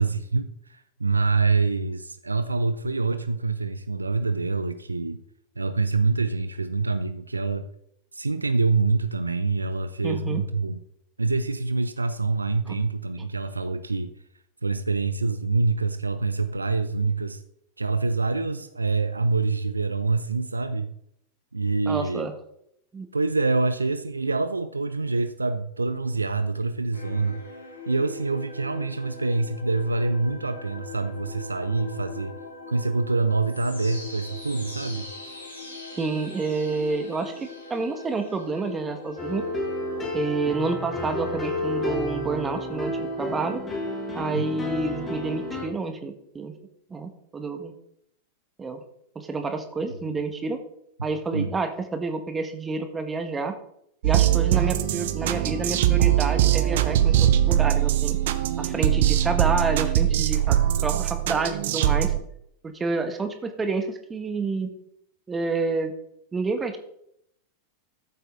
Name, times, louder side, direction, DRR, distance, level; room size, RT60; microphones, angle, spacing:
voice 1, 0.0-5.2 5.6-7.6 8.1-10.8 11.2-14.1 14.6-17.4 17.8-20.9 21.5-22.3 23.1-27.4 27.9-32.3 32.7-35.1 44.3-44.4 50.1-50.2 51.3-51.5, right 3 dB, 80° right, 12 dB, 0.6 m, -26 dB
voice 2, 10.0-10.4 12.7-12.8 21.9-22.3 22.9-23.1 36.0-39.5 40.1-43.6 44.1-46.5 46.9-47.7 48.6-48.8 49.1-50.6 51.0-53.6 54.0-58.2 58.6-62.1 62.6-64.7 65.3-65.9 66.3-66.8, right 3 dB, 15° right, 7 dB, 1.6 m, -29 dB
sound 1, 26.9-43.5, left 3 dB, 80° left, 5.0 m, -41 dB
sound 2, 39.2-45.7, left 1 dB, 20° left, 3.2 m, -31 dB
sound 3, 54.0-62.2, right 12 dB, 55° right, 0.9 m, -22 dB
13.5 x 7.9 x 3.9 m, 0.74 s
figure-of-eight pair, 90°, 0 cm